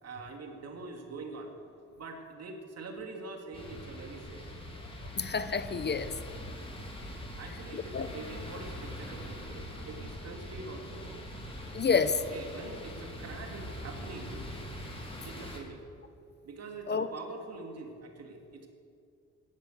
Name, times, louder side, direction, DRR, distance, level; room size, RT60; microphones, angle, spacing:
voice 1, 0.0-1.5 2.0-4.5 7.3-11.1 12.3-14.5 15.2-15.8 16.4-18.7, right 3 dB, 55° right, 3 dB, 2.7 m, -44 dB
sound 1, 3.5-15.6, equal, 20° left, 3.4 m, -43 dB
voice 2, 5.2-6.1 7.7-8.1 11.7-12.2 16.9-17.1, left 5 dB, 35° left, 12 dB, 0.8 m, -29 dB
17.0 x 11.5 x 6.6 m, 2.4 s
cardioid pair, 90°, 30 cm